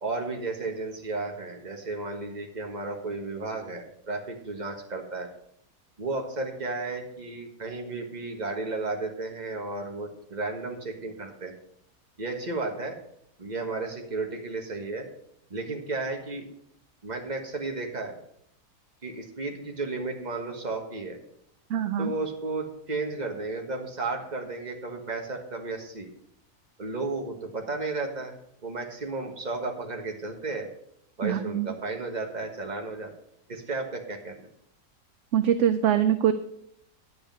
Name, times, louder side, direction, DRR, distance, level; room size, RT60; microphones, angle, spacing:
voice 1, 0.0-5.3 6.0-11.5 12.2-13.0 13.4-15.1 15.5-16.5 17.0-18.2 19.0-21.2 22.0-26.1 26.8-28.4 28.6-30.7 31.2-33.1 33.5-34.5, right 3 dB, 30° right, 3 dB, 1.5 m, -33 dB
voice 2, 21.7-22.1 31.2-31.7 35.3-36.3, right 9 dB, 65° right, 11 dB, 0.8 m, -23 dB
9.9 x 7.9 x 5.4 m, 0.72 s
omnidirectional pair, 1.6 m